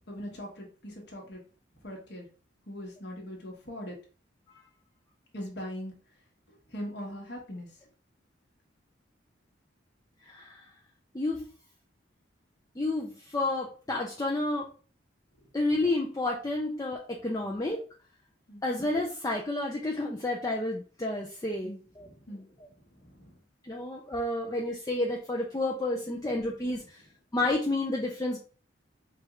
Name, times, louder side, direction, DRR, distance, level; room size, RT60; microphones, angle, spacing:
voice 1, 0.1-1.4 1.8-2.3 2.7-3.9 5.3-5.9 6.5-7.7 18.5-18.6 21.6-22.5 23.0-23.4, equal, 60° left, -1 dB, 1.3 m, -41 dB
voice 2, 10.2-10.7 11.1-11.4 12.8-14.7 15.5-17.8 18.6-22.1 23.6-27.0 27.3-28.4, left 2 dB, 20° left, -1 dB, 0.4 m, -30 dB
4.6 x 2.4 x 3.1 m, 0.39 s
head